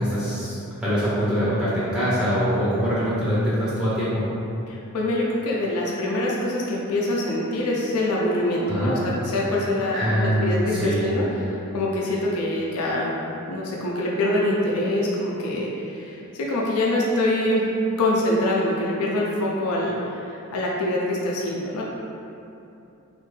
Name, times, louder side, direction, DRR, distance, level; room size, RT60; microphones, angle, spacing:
voice 1, 0.0-4.3 8.7-9.0 9.9-11.1, equal, 5° right, -12 dB, 0.5 m, -23 dB
voice 2, 4.7-13.1 13.5-17.6 18.0-19.9 20.2-21.8, left 1 dB, 80° left, -3 dB, 0.5 m, -24 dB
3.2 x 2.5 x 3.2 m, 2.8 s
head